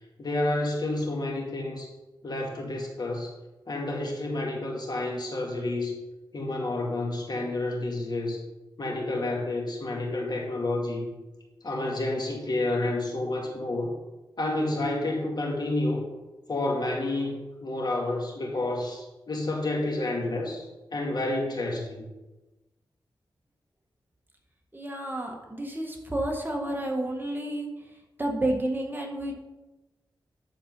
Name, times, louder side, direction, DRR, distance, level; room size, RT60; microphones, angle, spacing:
voice 1, 0.2-1.9 2.2-3.3 3.7-6.0 6.3-8.4 8.8-11.1 11.6-13.9 14.4-16.1 16.5-22.1, left 2 dB, 55° left, 0 dB, 2.1 m, -29 dB
voice 2, 24.7-27.7 28.2-29.3, right 1 dB, 25° right, 1 dB, 1.7 m, -30 dB
11.0 x 4.3 x 5.5 m, 1.1 s
cardioid pair, 70°, 9 cm